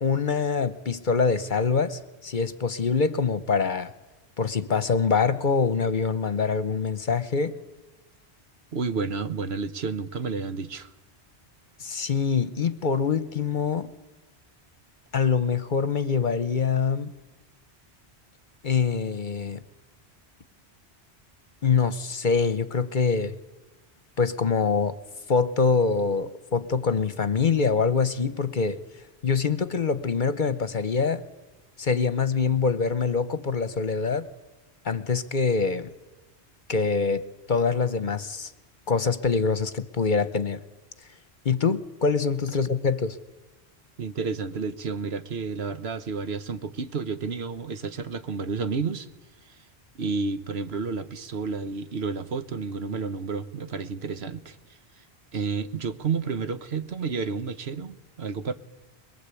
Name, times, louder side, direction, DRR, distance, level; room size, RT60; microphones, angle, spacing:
voice 1, 0.0-3.9 4.4-7.6 11.8-13.9 15.1-17.1 18.6-19.6 21.6-23.4 24.2-25.0 25.3-28.8 29.2-31.2 31.8-34.3 34.8-35.9 36.7-37.2 37.5-38.5 38.9-40.6 41.4-43.2, left 5 dB, 50° left, 1.0 m, -24 dB
voice 2, 8.7-10.9 44.0-49.1 49.5-49.6 49.9-54.6 55.0-55.1 55.3-58.5, right 5 dB, 70° right, 1.4 m, -31 dB
22.5 x 22.0 x 8.4 m
omnidirectional pair, 1.1 m